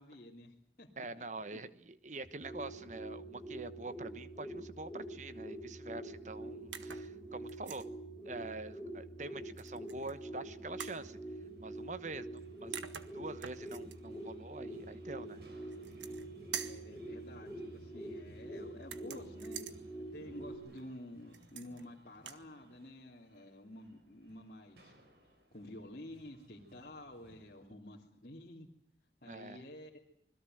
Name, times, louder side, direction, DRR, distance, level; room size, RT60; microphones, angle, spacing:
voice 1, 0.0-1.3 1.5-1.7 16.6-19.6 20.1-24.9 25.5-28.7 29.2-29.9, left 1 dB, 50° left, -4 dB, 2.9 m, -51 dB
voice 2, 1.0-7.9 8.2-11.2 11.6-12.7 13.1-15.4 29.2-29.6, right 2 dB, 40° right, 13 dB, 1.2 m, -45 dB
sound 1, 2.2-20.6, right 1 dB, ahead, 4.3 m, -46 dB
sound 2, 6.7-7.1 7.5-7.9 9.6-10.2 10.8-11.0 12.4-12.5 12.7-14.0 15.7-16.3 16.5-16.9 18.8-19.8 21.3-21.9 22.2-22.4, right 8 dB, 90° right, 1.6 m, -45 dB
sound 3, 9.2-27.7, equal, 65° right, 5.8 m, -64 dB
25.5 x 21.5 x 7.9 m, 0.69 s
head